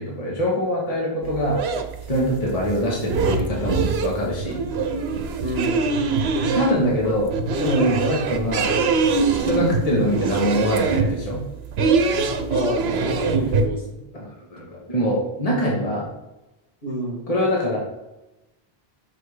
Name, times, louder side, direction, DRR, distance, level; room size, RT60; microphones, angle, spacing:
voice 1, 0.0-1.6 2.1-4.6 6.4-8.7 9.3-11.4 14.2-16.0 17.3-17.8, equal, 35° left, -3 dB, 1.5 m, -23 dB
sound 1, 1.2-13.7, right 4 dB, 85° right, 1.0 m, -24 dB
voice 2, 5.4-5.8 12.5-14.0 16.8-17.2, right 1 dB, 65° left, -4 dB, 2.5 m, -28 dB
6.2 x 4.4 x 4.8 m, 1.0 s
omnidirectional pair, 1.0 m